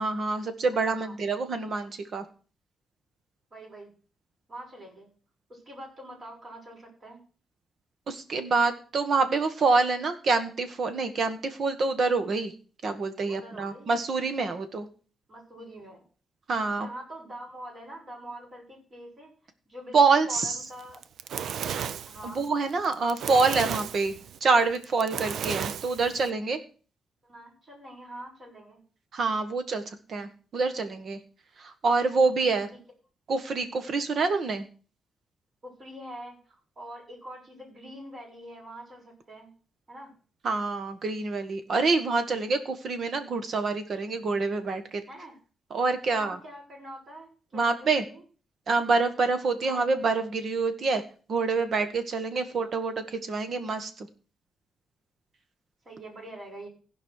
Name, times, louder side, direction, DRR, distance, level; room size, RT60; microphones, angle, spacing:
voice 1, 0.0-2.2 8.1-12.5 12.8-14.9 16.5-16.9 19.9-20.5 22.2-24.1 24.4-26.6 29.1-31.2 31.6-32.7 33.3-34.7 40.4-45.0 45.7-46.4 47.5-48.0 48.7-51.0 51.3-52.9 53.2-54.1, right 4 dB, 50° right, 9 dB, 1.6 m, -26 dB
voice 2, 0.8-1.1 3.5-3.9 4.5-5.1 5.5-7.2 13.3-14.0 15.3-16.0 16.7-19.3 19.7-21.0 22.0-22.5 27.2-28.8 35.6-39.5 39.9-40.1 45.1-45.3 46.1-48.2 49.6-49.8 52.6-52.7 55.8-56.7, right 1 dB, 35° right, -2 dB, 6.4 m, -44 dB
Fire, 20.8-26.3, right 8 dB, 75° right, 0.5 m, -34 dB
16.0 x 5.5 x 6.5 m, 0.39 s
wide cardioid pair, 140°, 0 cm